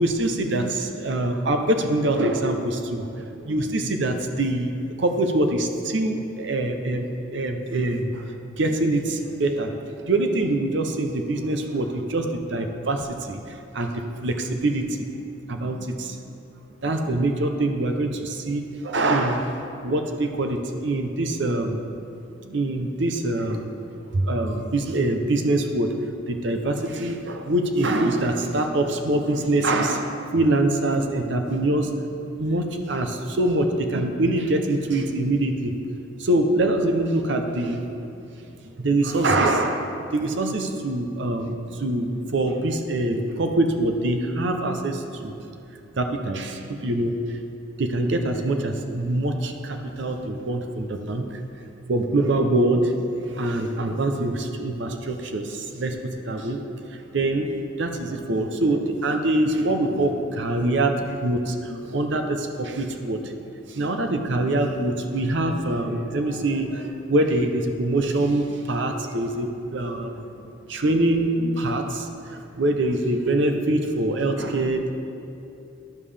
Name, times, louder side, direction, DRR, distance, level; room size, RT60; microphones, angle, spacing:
voice 1, 0.0-8.3 8.6-9.7 10.0-15.1 15.5-16.2 16.8-21.9 22.4-23.7 24.1-26.0 26.3-31.9 32.4-35.7 36.2-38.2 38.6-45.4 46.0-47.4 47.8-51.4 51.9-53.0 53.3-56.6 56.9-57.5 57.8-63.3 63.7-70.4 70.7-74.9, right 1 dB, 60° right, 5 dB, 0.6 m, -24 dB
10.5 x 7.3 x 3.3 m, 2.7 s
head